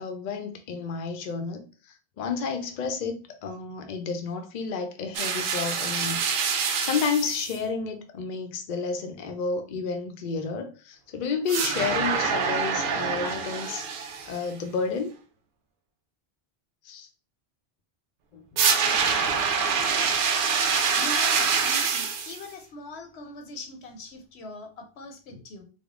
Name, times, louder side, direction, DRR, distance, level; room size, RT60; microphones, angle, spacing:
voice 1, 0.0-6.2 6.8-13.8 14.3-15.1 16.8-17.1 18.3-18.6 25.3-25.4, left 5 dB, 55° left, 0.6 m, -31 dB
sound 1, 5.1-7.6 11.5-14.4 18.6-22.4, right 6 dB, 60° right, 0.7 m, -25 dB
voice 2, 20.9-25.6, left 2 dB, 85° left, 1.0 m, -41 dB
3.5 x 2.0 x 3.5 m
omnidirectional pair, 1.1 m